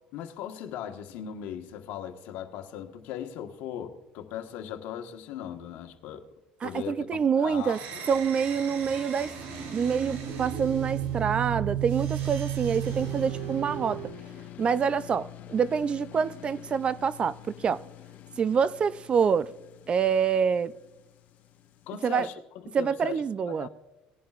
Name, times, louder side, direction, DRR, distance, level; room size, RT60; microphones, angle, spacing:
voice 1, 0.1-6.3 6.6-7.0 7.4-8.0 21.9-23.2 23.5-23.7, left 10 dB, 75° left, 1.3 m, -38 dB
voice 2, 6.6-7.8 8.1-9.3 9.7-14.1 14.6-17.8 18.4-19.5 19.9-20.7 22.0-22.3 22.7-23.7, right 6 dB, 35° right, 0.4 m, -26 dB
sound 1, 7.6-14.2, right 10 dB, 75° right, 2.5 m, -33 dB
sound 2, 12.8-21.9, left 13 dB, 55° left, 0.7 m, -47 dB
19.0 x 11.0 x 2.4 m
supercardioid pair, 110°, 3 cm